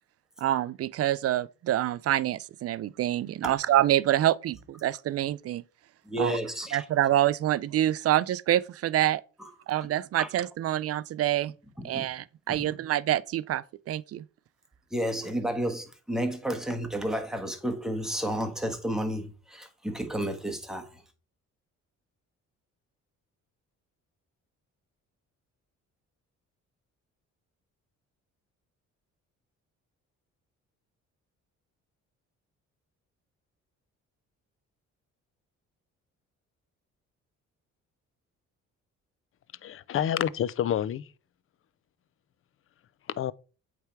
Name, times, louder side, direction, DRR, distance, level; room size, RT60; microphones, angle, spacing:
voice 1, 0.4-5.6 6.2-6.4 6.7-9.2 9.7-11.5 11.8-14.2, right 13 dB, 50° right, 0.4 m, -26 dB
voice 2, 6.0-6.8 9.4-9.5 9.8-9.9 10.2-10.3 11.8-12.0 12.5-12.6 14.9-21.0, equal, ahead, 1.4 m, -31 dB
voice 3, 39.6-41.1 43.1-43.3, left 10 dB, 45° left, 0.4 m, -28 dB
8.1 x 3.4 x 4.6 m
cardioid pair, 90°, 30 cm